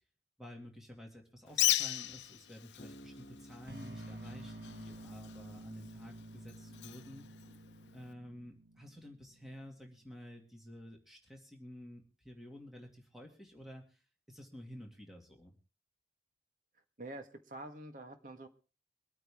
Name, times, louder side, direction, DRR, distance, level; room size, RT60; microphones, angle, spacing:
voice 1, 0.4-7.3 7.9-15.6, equal, ahead, 1 dB, 2.4 m, -51 dB
Bird, 1.5-8.1, left 14 dB, 85° left, 0.6 m, -38 dB
Bass guitar, 2.8-6.3, equal, 55° left, 1.2 m, -57 dB
sound 1, 3.7-9.7, right 1 dB, 65° right, 1.8 m, -50 dB
voice 2, 17.0-18.5, right 1 dB, 50° right, 6 dB, 1.6 m, -46 dB
24.0 x 9.0 x 3.7 m, 0.35 s
head